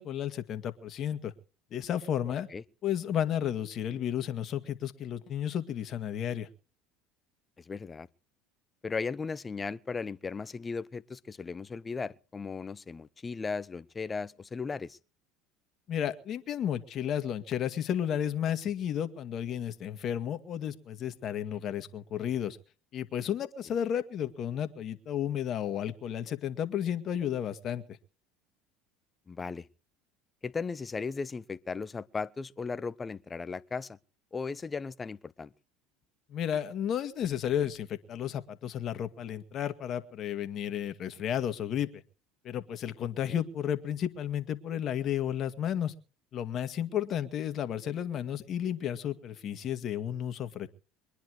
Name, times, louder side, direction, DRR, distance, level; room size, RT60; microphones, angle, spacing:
voice 1, 0.0-1.3 1.7-2.5 2.8-6.5 15.9-22.6 22.9-27.8 36.3-42.0 42.4-45.9 46.3-50.7, left 9 dB, 50° left, 2.0 m, -32 dB
voice 2, 7.6-8.1 8.8-15.0 29.3-29.7 30.4-34.0 34.3-35.5 43.3-43.4, left 4 dB, 25° left, 0.9 m, -36 dB
23.5 x 10.5 x 4.9 m
hypercardioid pair, 80°, 0 cm